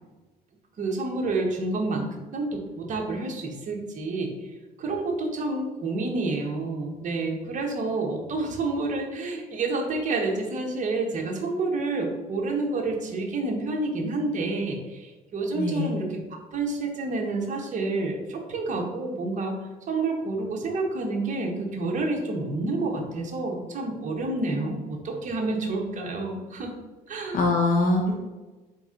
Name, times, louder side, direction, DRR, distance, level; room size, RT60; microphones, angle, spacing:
voice 1, 0.8-2.0 2.3-4.3 4.8-16.2 16.5-19.6 19.9-26.7 27.1-27.4, right 3 dB, 50° right, 2 dB, 0.9 m, -29 dB
voice 2, 15.5-15.9 27.3-28.1, left 2 dB, 50° left, 1 dB, 0.6 m, -23 dB
4.5 x 2.9 x 3.7 m, 1.2 s
cardioid pair, 110°, 17 cm